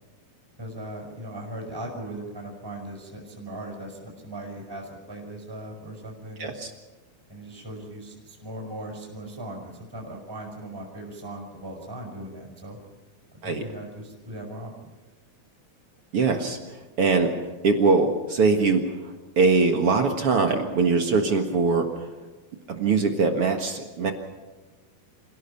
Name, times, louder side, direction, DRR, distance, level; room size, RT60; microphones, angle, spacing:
voice 1, 0.6-6.5 7.3-12.8 13.3-14.9, right 1 dB, 5° right, -1 dB, 5.8 m, -38 dB
voice 2, 6.4-6.7 13.4-13.6 16.1-16.6 17.0-17.3 17.6-18.8 19.4-21.9 22.7-24.1, right 4 dB, 50° right, 5 dB, 2.0 m, -22 dB
28.0 x 17.0 x 5.8 m, 1.3 s
omnidirectional pair, 4.3 m